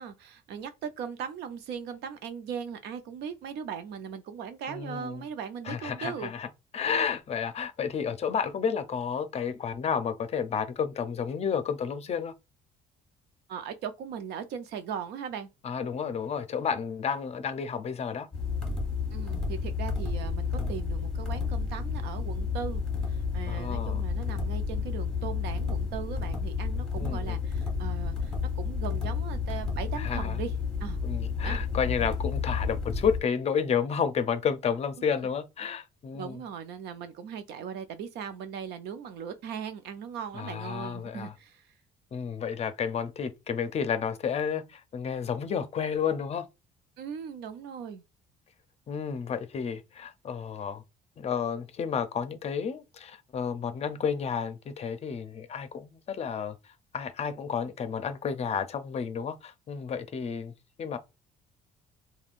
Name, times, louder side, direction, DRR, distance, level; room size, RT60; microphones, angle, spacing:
voice 1, 0.0-6.3 13.5-15.5 19.1-22.8 23.1-30.5 30.8-31.0 31.4-31.6 35.2-35.3 36.1-41.7 47.0-48.0, right 7 dB, 80° right, 0.6 m, -39 dB
voice 2, 4.7-5.2 5.7-6.5 6.7-12.3 15.6-18.3 23.5-24.0 27.0-27.4 29.9-30.4 31.0-36.4 40.3-41.3 42.1-46.5 48.9-50.8 51.2-56.6 56.9-60.5 60.8-61.0, left 7 dB, 40° left, 0.5 m, -31 dB
sound 1, 18.3-33.2, left 5 dB, 5° left, 1.1 m, -31 dB
3.5 x 2.2 x 2.4 m
cardioid pair, 110°, 17 cm